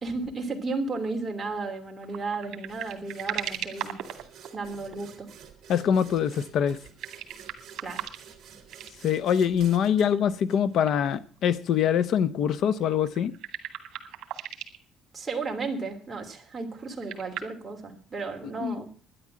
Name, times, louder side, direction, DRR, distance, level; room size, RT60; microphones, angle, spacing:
voice 1, 0.0-4.0 4.5-5.3 7.8-8.1 15.1-18.9, right 3 dB, 15° right, 2.9 m, -33 dB
sound 1, 2.0-4.9 6.7-8.4 8.7-8.9 10.2-10.3 10.8-11.1 11.4-11.5 12.7-14.8 16.7-17.4, right 11 dB, 65° right, 2.3 m, -37 dB
sound 2, 2.7-11.2, right 8 dB, 40° right, 3.5 m, -50 dB
voice 2, 5.7-6.8 9.0-13.3 18.6-18.8, left 8 dB, 55° left, 0.7 m, -24 dB
12.0 x 10.5 x 7.5 m
cardioid pair, 150°, 0 cm